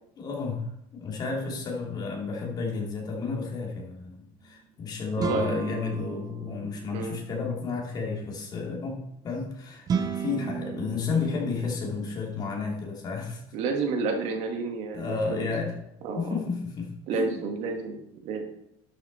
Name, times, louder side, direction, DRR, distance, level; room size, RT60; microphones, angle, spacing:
voice 1, 0.2-0.6 0.9-13.4 14.9-15.7 16.1-17.4, left 4 dB, 30° left, -1 dB, 2.7 m, -32 dB
sound 1, 5.2-7.2 9.9-12.0, right 6 dB, 30° right, 0.9 m, -33 dB
voice 2, 5.2-5.5 6.9-7.2 13.5-15.5 16.0-16.4 17.1-18.4, right 4 dB, 60° right, 4 dB, 1.7 m, -30 dB
12.0 x 6.3 x 4.2 m, 0.76 s
cardioid pair, 150°, 13 cm